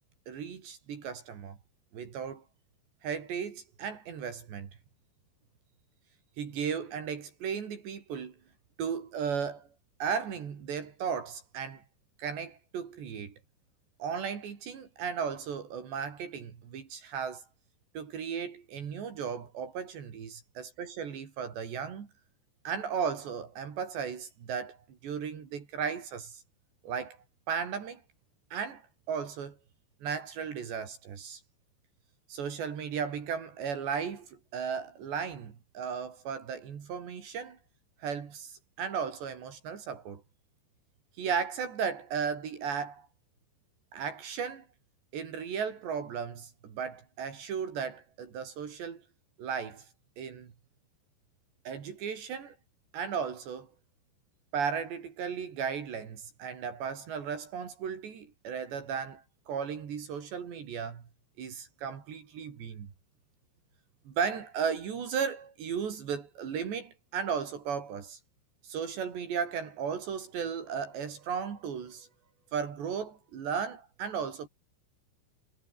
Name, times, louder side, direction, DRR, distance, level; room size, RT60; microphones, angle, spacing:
voice 1, 0.3-1.6 1.9-2.4 3.0-4.7 6.4-8.4 8.8-9.7 10.0-11.8 12.2-13.3 14.0-17.4 18.0-22.1 22.7-24.8 25.0-26.4 26.8-27.2 27.5-28.0 28.5-28.8 29.1-29.6 30.0-31.4 32.3-37.6 38.0-40.2 41.2-43.1 43.9-44.7 45.1-49.0 49.4-49.9 50.2-50.5 51.7-52.6 52.9-53.7 54.5-61.0 61.4-62.9 64.1-68.2 68.6-72.1 72.5-74.5, right 7 dB, 65° right, 5.5 m, -35 dB
omnidirectional pair, 5.5 m